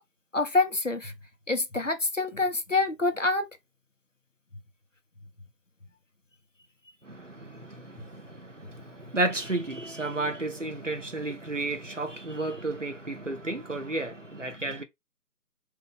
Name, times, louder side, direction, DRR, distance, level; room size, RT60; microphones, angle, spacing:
voice 1, 0.3-1.1 1.5-3.5, left 3 dB, 50° left, 0.5 m, -26 dB
voice 2, 7.0-14.8, right 2 dB, 50° right, 0.5 m, -32 dB
2.7 x 2.2 x 3.6 m
figure-of-eight pair, 175°, 49 cm